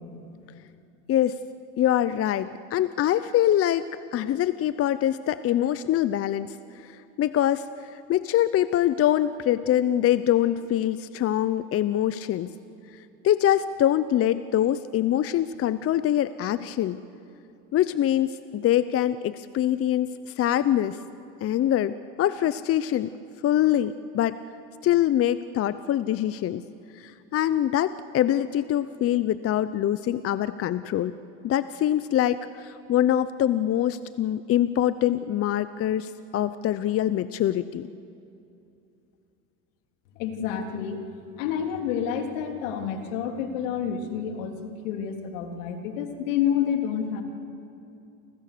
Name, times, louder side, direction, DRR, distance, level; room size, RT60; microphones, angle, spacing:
voice 1, 1.8-3.9 4.1-12.5 13.2-17.0 17.7-21.0 21.4-23.1 23.4-24.4 24.8-26.6 26.9-31.1 31.4-37.9, left 11 dB, 35° left, 14 dB, 0.8 m, -24 dB
voice 2, 40.2-41.0 41.4-47.2, left 8 dB, 75° left, 4 dB, 3.4 m, -29 dB
29.0 x 26.5 x 6.9 m, 2.6 s
supercardioid pair, 95°, 38 cm